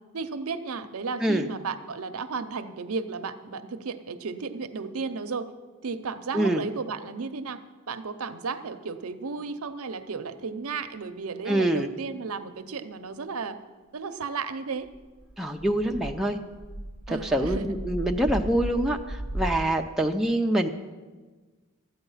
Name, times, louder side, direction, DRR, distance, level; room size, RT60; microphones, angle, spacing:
voice 1, 0.1-5.5 5.8-7.6 7.9-13.6 13.9-14.9 17.1-17.7, right 4 dB, 75° right, 10 dB, 0.7 m, -34 dB
voice 2, 11.5-11.9 15.4-16.4 17.1-20.7, right 1 dB, ahead, 1 dB, 0.5 m, -25 dB
sound 1, 14.8-19.7, right 1 dB, 75° left, 4.4 m, -35 dB
13.5 x 8.9 x 5.6 m, 1.3 s
head